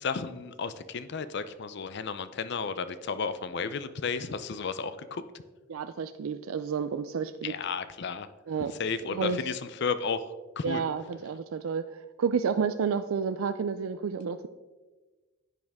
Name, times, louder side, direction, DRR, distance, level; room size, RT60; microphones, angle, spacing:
voice 1, 0.0-5.2 7.4-8.3 8.8-10.2 10.6-10.8, left 5 dB, 55° left, 13 dB, 0.5 m, -33 dB
voice 2, 5.7-7.5 8.5-8.7 9.1-9.4 10.6-14.5, right 6 dB, 80° right, 10 dB, 0.4 m, -30 dB
11.0 x 8.7 x 3.5 m, 1.3 s
head